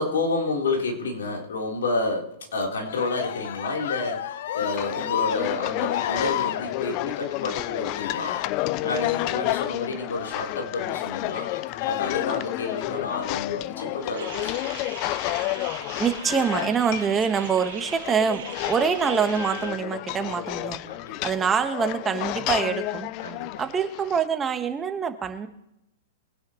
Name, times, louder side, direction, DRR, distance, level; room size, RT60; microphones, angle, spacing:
voice 1, 0.0-8.3 8.8-11.5 11.8-14.8 20.9-21.3 23.2-23.6, left 3 dB, 85° left, -1 dB, 3.7 m, -30 dB
Cheering, 2.8-14.5 15.7-16.6 17.3-18.0, left 11 dB, 65° left, 0.7 m, -34 dB
sound 1, 4.6-24.3, left 18 dB, 40° left, 0.4 m, -31 dB
sound 2, 14.2-19.7, right 9 dB, 70° right, 2.0 m, -40 dB
voice 2, 16.0-20.8 21.2-23.1 23.6-25.5, right 6 dB, 20° right, 7 dB, 1.3 m, -25 dB
23.0 x 10.0 x 3.1 m, 0.81 s
hypercardioid pair, 130°, 0 cm